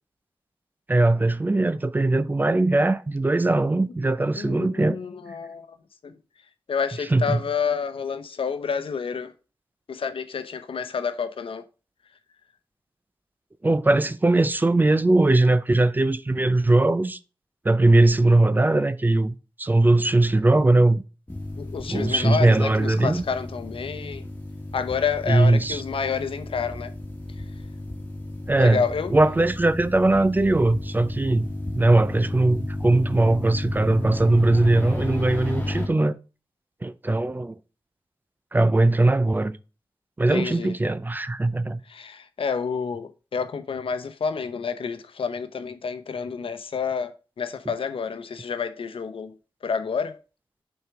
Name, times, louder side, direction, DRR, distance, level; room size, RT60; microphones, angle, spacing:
voice 1, 0.9-5.0 7.1-7.4 13.6-17.2 17.6-21.0 21.9-23.2 25.3-25.8 28.5-28.8 29.1-36.2 36.8-37.6 38.5-39.6 40.2-41.8, right 2 dB, 20° right, 0.4 m, -20 dB
voice 2, 4.4-5.8 6.0-6.2 6.7-9.3 9.9-11.6 21.6-24.2 24.7-26.9 27.4-27.5 28.6-29.1 40.3-40.8 41.8-49.4 49.6-50.2, left 6 dB, 80° left, 0.8 m, -29 dB
sound 1, 21.3-35.9, left 1 dB, 20° left, 1.6 m, -33 dB
6.8 x 4.5 x 4.6 m
wide cardioid pair, 135°, 9 cm